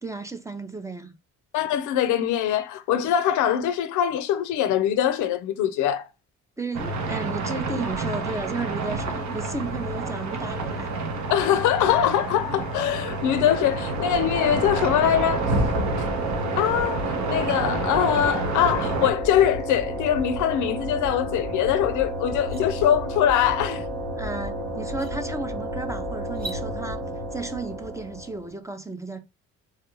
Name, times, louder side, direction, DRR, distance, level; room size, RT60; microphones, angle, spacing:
voice 1, 0.0-1.1 6.6-10.9 24.2-27.0 27.3-29.2, right 3 dB, 10° right, 0.4 m, -33 dB
voice 2, 1.5-6.0 11.3-15.5 16.6-23.8, left 10 dB, 80° left, 0.5 m, -23 dB
sound 1, 6.7-19.1, right 3 dB, 70° right, 0.7 m, -29 dB
sound 2, 12.7-28.5, equal, 90° right, 1.0 m, -32 dB
sound 3, 21.7-21.8 22.2-22.6 24.3-24.4 24.9-25.1 26.3-26.6, right 2 dB, 30° right, 0.8 m, -39 dB
3.3 x 2.4 x 2.9 m
cardioid pair, 90°, 30 cm